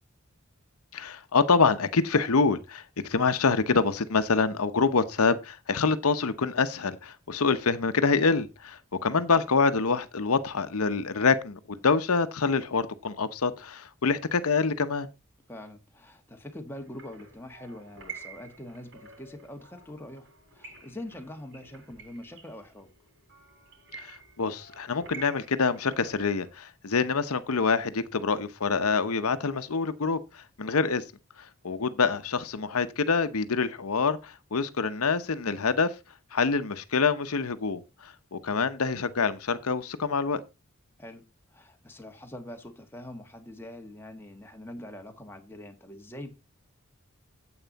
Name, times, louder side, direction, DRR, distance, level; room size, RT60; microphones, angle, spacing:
voice 1, 0.9-15.1 23.9-31.0 31.4-35.9 36.3-40.4, left 4 dB, 80° left, 0.8 m, -26 dB
voice 2, 15.5-20.3 20.5-22.9 41.0-41.2 41.5-46.3, left 1 dB, 10° left, 1.4 m, -43 dB
sound 1, 16.7-26.5, right 5 dB, 55° right, 7.0 m, -49 dB
9.2 x 8.0 x 4.0 m
head